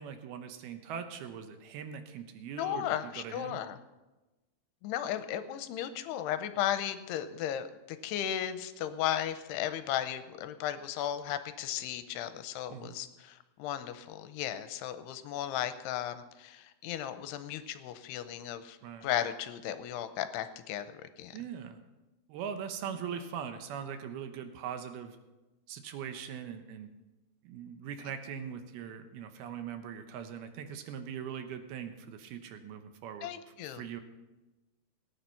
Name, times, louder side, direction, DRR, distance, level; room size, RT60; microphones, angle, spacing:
voice 1, 0.0-2.9 3.2-3.6 12.7-12.9 18.8-19.1 21.3-21.8 22.3-25.2 25.7-26.9 27.4-33.3 33.6-34.0, right 8 dB, 75° right, 8 dB, 2.7 m, -41 dB
voice 2, 2.6-3.8 4.8-21.4 22.9-23.0 33.2-33.8, left 11 dB, 85° left, 11 dB, 2.7 m, -35 dB
17.5 x 9.4 x 5.7 m, 1.1 s
omnidirectional pair, 4.8 m